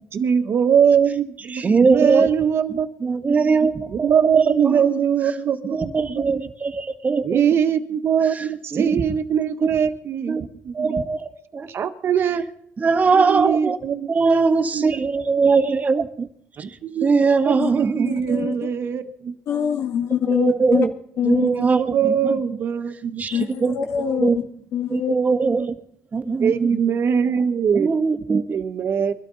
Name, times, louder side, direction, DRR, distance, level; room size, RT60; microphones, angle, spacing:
voice 1, 0.1-2.9 3.9-6.3 7.2-11.0 11.7-12.5 13.1-15.0 16.6-17.1 17.4-19.3 20.6-20.7 21.5-23.7 24.1-24.3 25.4-25.7 26.4-27.9 28.5-29.1, right 7 dB, 50° right, 1.4 m, -22 dB
voice 2, 1.5-2.3 3.0-4.9 5.7-7.4 8.7-9.0 9.6-9.7 10.3-10.4 10.7-11.7 12.8-13.8 14.1-16.3 17.0-18.4 20.3-20.9 21.2-22.3 23.2-23.8 24.2-24.4 24.9-25.7 26.1-26.6 27.7-28.6, right 4 dB, 30° right, 1.4 m, -21 dB
voice 3, 18.1-18.5 19.5-20.8 21.2-21.5 23.3-24.3 24.7-25.1 26.2-26.4, left 9 dB, 70° left, 1.9 m, -24 dB
23.0 x 12.5 x 4.1 m
cardioid pair, 110°, 5 cm